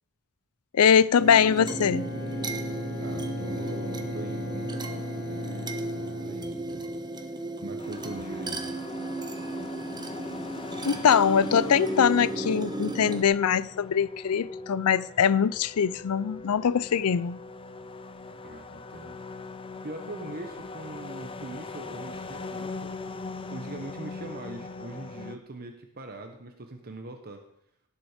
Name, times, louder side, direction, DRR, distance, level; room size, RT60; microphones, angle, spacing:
voice 1, 0.7-2.1 10.8-17.4, left 7 dB, 85° left, 0.5 m, -22 dB
sound 1, 1.2-13.2, right 2 dB, 20° right, 1.1 m, -35 dB
Bowed string instrument, 1.6-7.0, left 1 dB, 60° left, 1.7 m, -37 dB
voice 2, 3.0-6.9 7.6-8.6 18.4-19.2 19.8-23.1 23.5-27.4, right 2 dB, 45° right, 1.2 m, -41 dB
sound 2, 7.8-25.4, left 3 dB, 25° left, 0.6 m, -40 dB
18.0 x 7.5 x 5.1 m
head